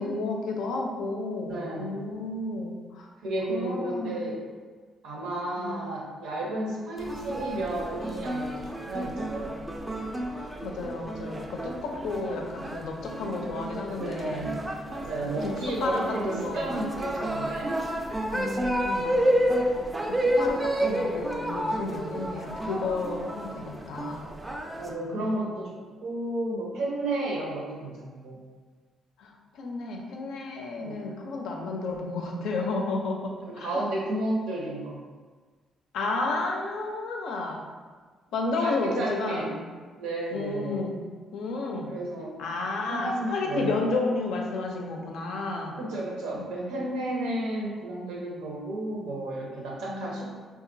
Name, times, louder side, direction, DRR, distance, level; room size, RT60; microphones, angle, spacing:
voice 1, 0.0-3.1 3.5-4.2 5.6-5.9 10.4-14.5 15.4-15.5 15.8-16.0 16.3-16.6 18.3-19.2 20.1-24.3 25.1-25.3 29.2-33.8 35.9-37.6 38.3-39.6 40.3-40.9 41.3-41.9 42.4-45.8 46.3-46.5 46.8-46.9 49.8-50.2, left 3 dB, 85° left, 1 dB, 0.4 m, -32 dB
voice 2, 1.5-2.0 3.2-4.4 5.0-9.3 14.0-14.6 14.9-17.7 24.7-28.4 30.8-31.1 33.5-35.0 38.6-39.6 39.9-40.8 41.9-42.4 42.9-43.8 45.8-50.2, right 1 dB, 85° right, -3 dB, 0.7 m, -32 dB
sound 1, 7.0-24.9, right 1 dB, 15° right, 0.3 m, -30 dB
2.9 x 2.4 x 2.6 m, 1.4 s
cardioid pair, 90°, 0 cm